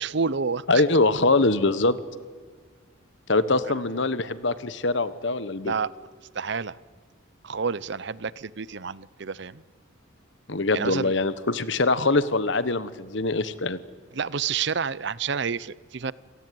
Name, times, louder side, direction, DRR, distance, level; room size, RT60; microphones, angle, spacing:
voice 1, 0.0-0.8 5.6-5.9 6.3-6.8 7.4-9.6 10.7-11.1 14.1-16.1, right 5 dB, 55° right, 20 dB, 0.6 m, -29 dB
voice 2, 0.7-1.9 3.3-5.7 10.5-13.8, left 3 dB, 60° left, 14 dB, 1.2 m, -23 dB
27.5 x 18.0 x 9.4 m, 1.5 s
head